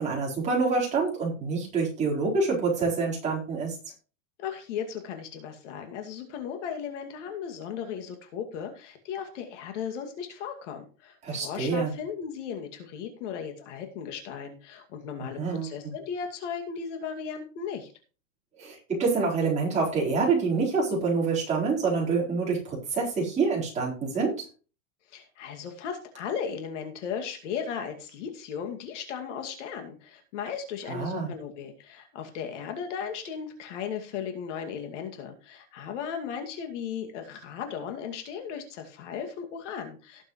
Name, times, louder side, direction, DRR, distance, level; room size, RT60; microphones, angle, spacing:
voice 1, 0.0-3.8 11.2-11.9 15.2-15.7 18.6-24.5 30.9-31.3, right 4 dB, 15° right, -4 dB, 4.3 m, -27 dB
voice 2, 4.4-17.9 25.1-40.3, left 7 dB, 55° left, 4 dB, 2.4 m, -36 dB
18.5 x 7.1 x 3.1 m, 0.35 s
supercardioid pair, 165°, 42 cm